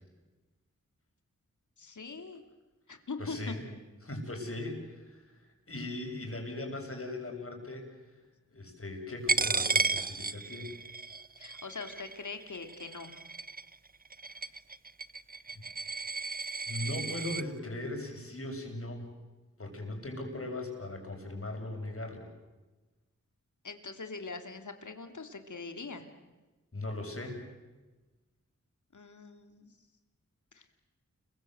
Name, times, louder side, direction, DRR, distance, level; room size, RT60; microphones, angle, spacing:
voice 1, 1.8-2.4 2.9-3.5 11.4-13.1 23.6-26.1 28.9-29.7 30.5-30.8, left 4 dB, 75° left, 7 dB, 2.8 m, -42 dB
voice 2, 3.2-3.7 4.0-8.2 8.5-10.8 14.3-14.5 15.5-15.6 16.7-19.1 19.6-22.3 26.7-27.4, left 1 dB, 45° left, 2 dB, 7.2 m, -39 dB
Coin (dropping), 9.3-17.4, right 3 dB, 30° right, 0.8 m, -34 dB
29.5 x 22.5 x 8.0 m, 1.2 s
wide cardioid pair, 55°, 30 cm